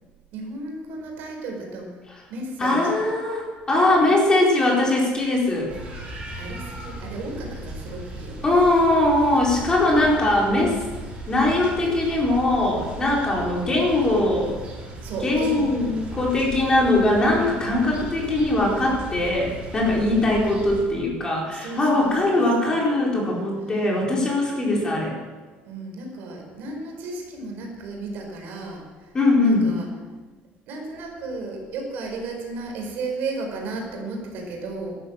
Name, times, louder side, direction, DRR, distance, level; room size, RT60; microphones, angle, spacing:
voice 1, 0.3-1.9 2.3-3.0 6.4-8.5 10.0-10.4 15.0-15.9 21.5-22.7 23.1-23.5 25.6-28.8 29.4-29.9 30.7-35.0, right 3 dB, 60° right, 1 dB, 4.7 m, -34 dB
voice 2, 2.6-5.7 8.4-10.8 11.3-14.5 15.2-25.2 29.1-29.7, left 2 dB, 20° left, -3 dB, 4.3 m, -21 dB
sound 1, 5.7-20.8, right 1 dB, 30° right, 5.9 m, -37 dB
14.5 x 12.0 x 7.6 m, 1.3 s
cardioid pair, 160°, 4 cm